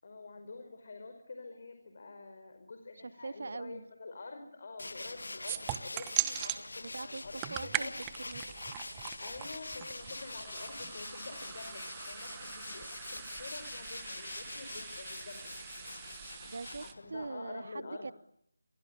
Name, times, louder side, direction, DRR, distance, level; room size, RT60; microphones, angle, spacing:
voice 1, 0.0-8.0 9.2-15.5 16.8-18.1, left 3 dB, 45° left, 5.1 m, -47 dB
voice 2, 3.0-3.8 6.8-7.2 7.5-7.9 8.3-8.9 16.5-18.1, right 3 dB, 55° right, 1.1 m, -42 dB
Tools, 4.8-17.3, left 2 dB, 70° left, 1.3 m, -44 dB
sound 1, 5.5-6.6 7.2-16.9, right 15 dB, 15° right, 1.1 m, -41 dB
29.0 x 23.5 x 8.4 m
figure-of-eight pair, 160°, 0 cm